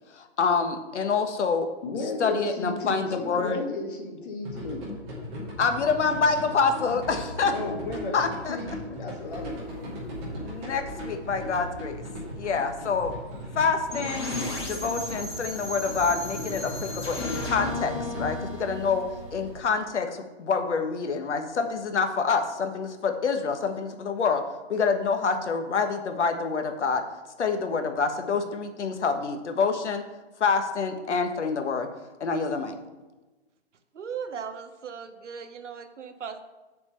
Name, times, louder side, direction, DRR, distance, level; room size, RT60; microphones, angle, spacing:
voice 1, 0.1-1.7 2.2-3.6 5.6-7.5 8.1-8.6 10.4-12.0 12.3-13.1 13.5-19.0 19.3-24.4 24.7-27.0 27.4-30.0 30.4-31.9 32.2-32.7, left 5 dB, 75° left, 6 dB, 1.4 m, -27 dB
voice 2, 1.8-4.9 7.4-9.9, left 2 dB, 45° left, 2 dB, 1.7 m, -34 dB
sound 1, 4.4-18.3, left 1 dB, 10° right, 0.8 m, -38 dB
sound 2, 9.3-19.6, right 1 dB, 60° right, 3.0 m, -44 dB
sound 3, 13.9-19.7, left 2 dB, 25° left, 1.4 m, -35 dB
voice 3, 33.9-36.4, right 7 dB, 90° right, 8 dB, 1.1 m, -37 dB
7.1 x 4.4 x 6.7 m, 1.1 s
hypercardioid pair, 175°, 35 cm